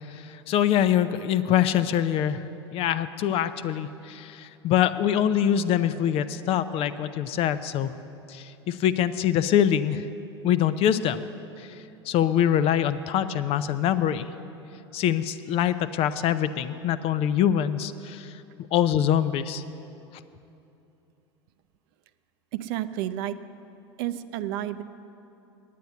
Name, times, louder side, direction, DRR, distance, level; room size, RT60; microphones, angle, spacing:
voice 1, 0.5-2.4 2.7-7.9 8.3-10.0 10.4-11.2 12.1-14.2 14.9-18.3 18.7-19.6, left 10 dB, 40° left, 13 dB, 0.5 m, -24 dB
voice 2, 22.5-23.3 24.0-24.8, right 13 dB, 55° right, 13 dB, 0.5 m, -30 dB
9.4 x 9.2 x 8.1 m, 2.8 s
hypercardioid pair, 85°, 15 cm